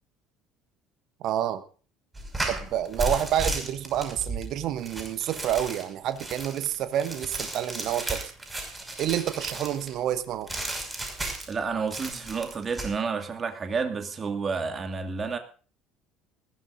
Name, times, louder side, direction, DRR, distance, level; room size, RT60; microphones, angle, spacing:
voice 1, 1.2-1.6 2.5-8.3 9.0-10.5, right 11 dB, 50° right, 1.2 m, -28 dB
sound 1, 2.1-9.9 10.5-11.6 11.9-12.9, right 1 dB, 15° right, 5.9 m, -34 dB
voice 2, 11.5-15.4, right 5 dB, 30° right, 2.3 m, -30 dB
21.0 x 16.5 x 2.6 m
figure-of-eight pair, 60°, 0 cm